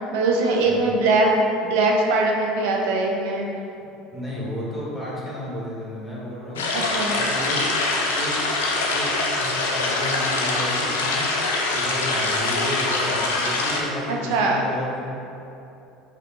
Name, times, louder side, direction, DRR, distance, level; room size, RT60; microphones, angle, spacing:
voice 1, 0.1-3.5 6.7-7.1 14.1-14.6, right 2 dB, 65° right, 0 dB, 0.5 m, -21 dB
voice 2, 3.8-6.7 7.1-7.6 8.1-8.4 8.9-11.3 11.7-15.2, left 1 dB, 5° left, -7 dB, 1.3 m, -32 dB
sound 1, 6.6-13.8, left 2 dB, 75° left, 0.4 m, -24 dB
4.8 x 2.2 x 2.8 m, 2.7 s
figure-of-eight pair, 70°, 0 cm